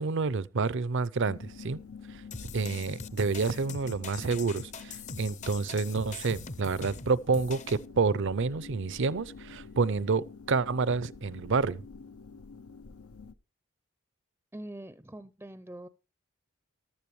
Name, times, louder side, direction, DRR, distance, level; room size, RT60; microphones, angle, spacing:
voice 1, 0.0-1.8 2.1-2.2 2.5-11.8, right 4 dB, 60° right, 0.6 m, -29 dB
sound 1, 1.2-13.3, left 5 dB, 85° left, 0.7 m, -48 dB
sound 2, 2.3-7.8, left 4 dB, 35° left, 0.6 m, -42 dB
voice 2, 14.5-15.9, right 1 dB, 10° right, 0.5 m, -43 dB
14.0 x 12.5 x 3.1 m
head